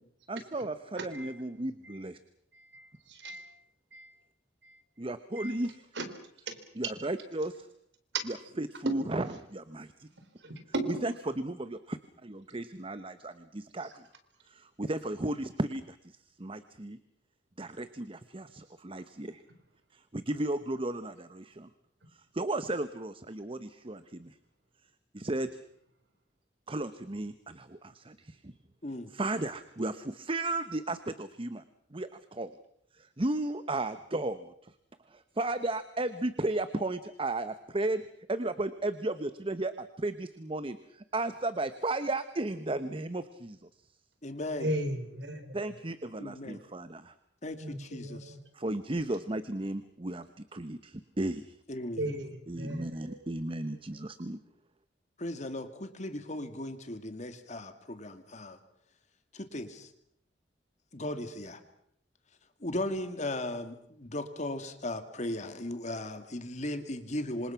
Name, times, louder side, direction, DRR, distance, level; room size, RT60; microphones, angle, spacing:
voice 1, 0.3-2.2 5.0-5.8 6.8-7.7 8.3-10.1 11.0-14.0 14.5-16.0 16.4-17.0 17.6-19.4 20.1-21.7 22.3-24.3 25.1-25.5 26.7-28.5 29.1-31.6 31.9-32.5 33.2-34.5 35.1-38.0 38.3-43.6 45.5-47.1 48.6-51.4 52.5-54.4, right 2 dB, 30° right, 12 dB, 0.9 m, -34 dB
voice 2, 1.0-1.3 2.5-3.6 3.9-4.1 4.6-4.7 5.4-5.6 5.9-6.1 6.5-6.6 10.4-11.0 44.6-45.7 47.6-48.4 52.0-52.3 52.6-53.3, right 1 dB, 75° right, 8 dB, 4.0 m, -37 dB
voice 3, 44.2-44.7 46.2-46.6 47.4-48.3 51.7-52.1 55.2-58.6 59.3-59.9 60.9-61.6 62.6-67.5, left 1 dB, 40° left, 8 dB, 2.3 m, -37 dB
27.0 x 26.5 x 5.8 m, 0.71 s
head